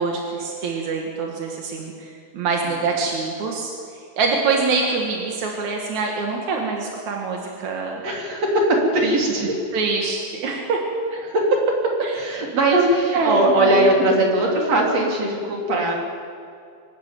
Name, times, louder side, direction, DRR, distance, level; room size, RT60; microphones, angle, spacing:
voice 1, 0.0-3.7 4.2-8.0 9.7-10.8 12.0-12.1 12.7-13.8, right 4 dB, 60° right, 0 dB, 2.1 m, -24 dB
voice 2, 8.0-9.5 11.2-11.6 12.1-15.9, right 1 dB, 35° right, -1 dB, 3.9 m, -20 dB
24.5 x 13.0 x 9.2 m, 2.4 s
omnidirectional pair, 5.9 m